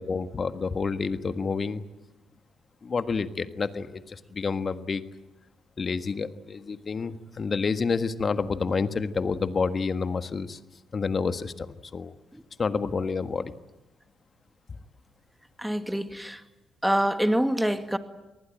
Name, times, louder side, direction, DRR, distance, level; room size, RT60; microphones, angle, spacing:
voice 1, 0.0-1.8 2.8-5.0 5.8-10.6 10.9-12.1 12.6-13.5, left 5 dB, 40° left, 11 dB, 1.5 m, -29 dB
voice 2, 15.6-16.4 16.8-18.0, equal, 5° right, 9 dB, 2.1 m, -26 dB
27.5 x 19.5 x 9.0 m, 1.0 s
hypercardioid pair, 55°, 0 cm